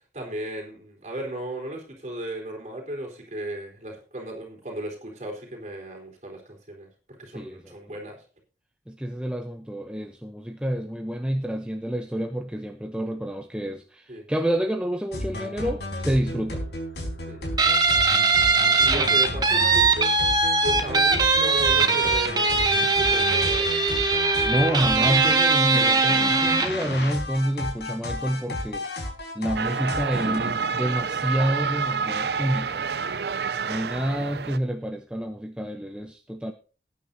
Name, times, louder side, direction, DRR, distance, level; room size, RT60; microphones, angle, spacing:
voice 1, 0.1-6.9 7.2-8.2 14.1-14.2 17.3-17.4 18.8-20.2 20.6-22.7 23.0-23.7, right 1 dB, 40° right, 1 dB, 4.2 m, -35 dB
voice 2, 7.3-7.8 8.9-16.6 24.4-28.8 29.3-32.9 33.6-36.5, equal, 5° right, 4 dB, 0.7 m, -28 dB
sound 1, 15.1-30.4, left 1 dB, 70° left, 4.3 m, -33 dB
Guitar, 17.6-26.8, right 4 dB, 25° right, 1.6 m, -21 dB
sound 2, 29.6-34.6, right 5 dB, 70° right, 0.6 m, -28 dB
19.0 x 9.6 x 2.7 m, 0.36 s
head